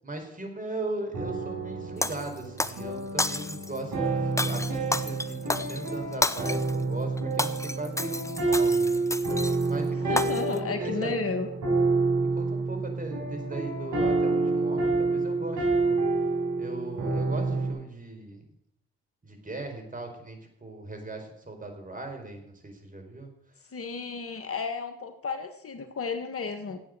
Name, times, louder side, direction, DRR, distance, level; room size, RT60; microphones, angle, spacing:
voice 1, 0.0-9.0 9.6-11.1 12.4-16.0 16.6-18.4 19.2-23.3, right 2 dB, 25° right, 4 dB, 4.5 m, -38 dB
sound 1, 1.1-17.7, right 3 dB, 70° right, 6.0 m, -28 dB
Shatter, 2.0-2.8 3.2-3.8 4.4-6.8 7.2-9.7 10.2-10.6, left 2 dB, 10° left, 0.8 m, -31 dB
voice 2, 9.9-11.5 23.7-26.8, left 5 dB, 45° left, 7 dB, 1.7 m, -33 dB
11.5 x 8.6 x 7.8 m, 0.72 s
supercardioid pair, 55°, 30 cm